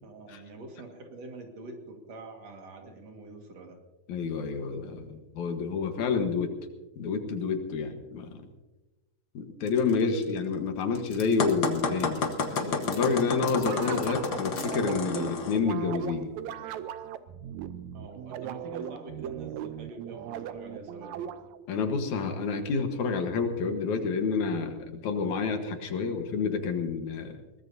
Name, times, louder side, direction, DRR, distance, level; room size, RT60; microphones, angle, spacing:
voice 1, 0.0-3.8 17.9-21.3, right 2 dB, 60° right, 3 dB, 3.0 m, -45 dB
voice 2, 4.1-6.5 7.0-8.4 9.3-16.3 21.7-27.3, left 5 dB, 75° left, 6 dB, 2.7 m, -29 dB
sound 1, 9.7-14.7, left 3 dB, 40° left, 2.9 m, -46 dB
sound 2, 11.4-15.6, left 4 dB, 90° left, 0.8 m, -31 dB
sound 3, 13.5-21.7, right 10 dB, 80° right, 2.0 m, -38 dB
21.5 x 19.5 x 2.7 m, 1.1 s
omnidirectional pair, 3.5 m